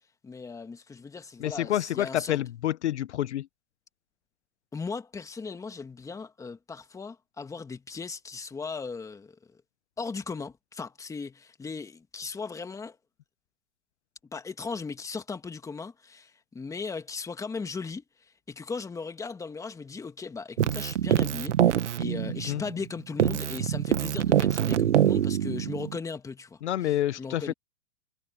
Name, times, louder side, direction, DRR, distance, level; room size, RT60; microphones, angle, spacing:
voice 1, 0.2-2.4 4.7-9.4 10.0-13.0 14.3-18.0 18.5-27.5, left 4 dB, 10° left, 1.9 m, -37 dB
voice 2, 1.4-3.5 22.5-22.6 26.6-27.5, left 12 dB, 75° left, 1.1 m, -28 dB
Keyboard (musical), 20.6-22.9 23.2-26.0, right 10 dB, 85° right, 1.6 m, -25 dB
hypercardioid pair, 135°, 35 cm